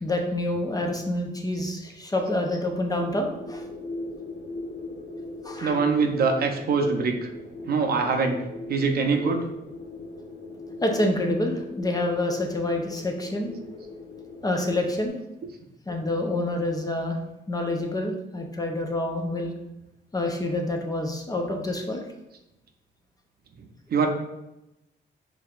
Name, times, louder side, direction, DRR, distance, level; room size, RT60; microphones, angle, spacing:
voice 1, 0.0-3.6 5.4-5.8 10.8-13.5 14.4-15.2 15.9-17.2 17.5-19.5 20.1-22.0, left 1 dB, 20° left, 2 dB, 0.6 m, -27 dB
sound 1, 2.9-15.1, left 2 dB, 65° left, 1.1 m, -39 dB
voice 2, 5.6-7.3 7.6-8.4 8.7-9.5 15.4-15.5 23.9-24.1, right 4 dB, 50° right, 4 dB, 0.6 m, -23 dB
5.0 x 3.4 x 2.4 m, 0.93 s
cardioid pair, 90°, 20 cm